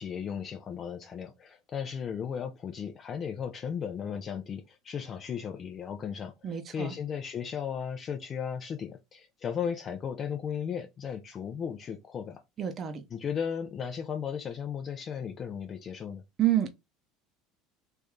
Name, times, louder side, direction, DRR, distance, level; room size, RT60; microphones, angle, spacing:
voice 1, 0.0-12.4 13.1-16.2, left 7 dB, 40° left, 0.5 m, -36 dB
voice 2, 6.4-6.9 12.6-13.0 16.4-16.7, right 11 dB, 40° right, 0.7 m, -28 dB
3.2 x 2.6 x 3.5 m
hypercardioid pair, 90°, 0 cm